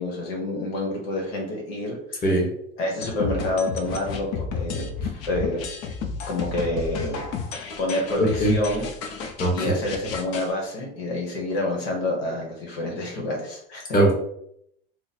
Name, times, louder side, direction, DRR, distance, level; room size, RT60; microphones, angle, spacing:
voice 1, 0.0-2.4 2.8-5.6 6.3-7.2 7.8-8.9 9.5-14.0, left 1 dB, 80° left, -1 dB, 1.3 m, -28 dB
sound 1, 3.0-10.5, left 5 dB, 50° left, 0.7 m, -32 dB
voice 2, 8.2-8.5 9.4-9.5 13.9-14.1, right 1 dB, 30° left, 0 dB, 1.3 m, -19 dB
3.0 x 2.1 x 4.1 m, 0.71 s
hypercardioid pair, 95°, 31 cm